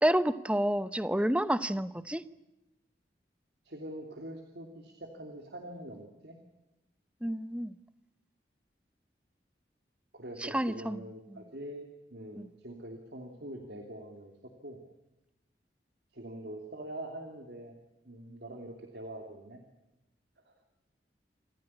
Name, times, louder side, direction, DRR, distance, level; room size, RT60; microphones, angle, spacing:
voice 1, 0.0-2.2 7.2-7.7 10.4-11.0 12.4-12.5, right 1 dB, 5° right, 15 dB, 0.8 m, -29 dB
voice 2, 3.6-6.4 10.1-14.8 16.1-17.7 18.0-19.6 20.5-20.6, right 1 dB, 75° right, 4 dB, 2.9 m, -44 dB
27.5 x 15.0 x 9.9 m, 0.95 s
head